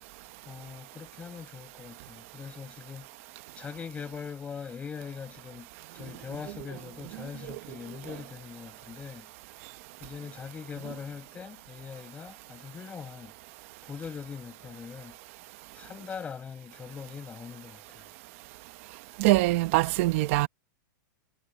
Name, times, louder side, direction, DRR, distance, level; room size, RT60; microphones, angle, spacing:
voice 1, 0.5-3.1 3.6-5.7 5.9-9.3 10.0-13.3 13.8-15.1 15.7-18.1, left 6 dB, 15° left, 5.2 m, -41 dB
voice 2, 19.2-20.5, right 19 dB, 40° right, 1.0 m, -23 dB
supercardioid pair, 170°, 11 cm